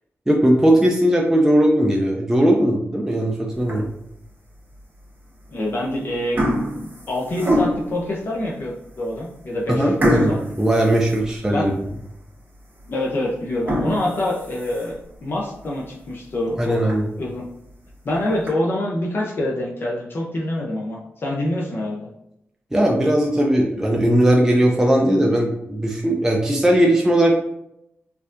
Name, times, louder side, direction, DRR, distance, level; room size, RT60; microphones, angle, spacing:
voice 1, 0.3-3.9 9.7-11.7 16.6-17.1 22.7-27.4, right 1 dB, 10° right, -1 dB, 0.4 m, -18 dB
sound 1, 3.6-4.1 4.7-4.8 5.6-5.9 6.1-8.0 8.6-8.7 9.1-9.2 10.0-11.8 12.2-12.3 12.8-12.9 13.5-15.1 15.6-15.7 16.1-16.2 16.5-16.6 16.9-17.0 17.9-18.5, equal, 40° right, 1.4 m, -25 dB
voice 2, 5.5-6.4 6.7-10.4 11.5-11.7 12.9-15.0 15.2-16.9 17.2-17.4 18.0-22.1, left 1 dB, 50° left, -3 dB, 0.6 m, -26 dB
4.2 x 2.7 x 2.5 m, 0.80 s
wide cardioid pair, 130°, 5 cm